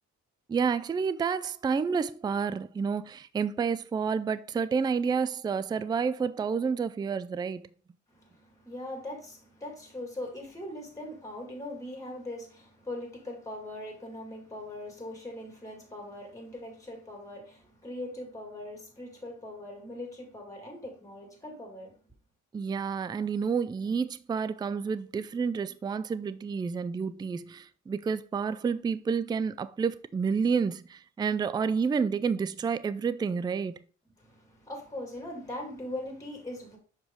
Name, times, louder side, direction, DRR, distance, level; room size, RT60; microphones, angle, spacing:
voice 1, 0.5-7.7 22.5-33.8, right 6 dB, 15° right, 0.3 m, -29 dB
voice 2, 8.1-22.0 34.2-36.8, left 1 dB, 10° left, 2.6 m, -41 dB
6.4 x 4.9 x 3.8 m
cardioid pair, 90°, 30 cm